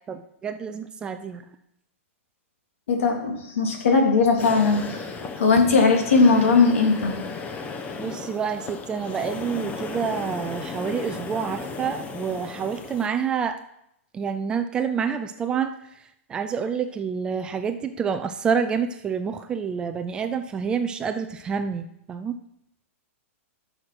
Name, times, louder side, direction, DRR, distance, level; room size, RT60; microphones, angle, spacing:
voice 1, 0.1-1.6 8.0-13.6 14.1-15.8 16.3-22.4, right 6 dB, 10° right, 9 dB, 0.4 m, -28 dB
voice 2, 2.9-5.0 5.4-7.2, left 4 dB, 75° left, 2 dB, 3.0 m, -19 dB
sound 1, 4.4-13.1, left 4 dB, 15° left, 0.8 m, -35 dB
11.0 x 6.5 x 6.1 m, 0.80 s
hypercardioid pair, 165°, 7 cm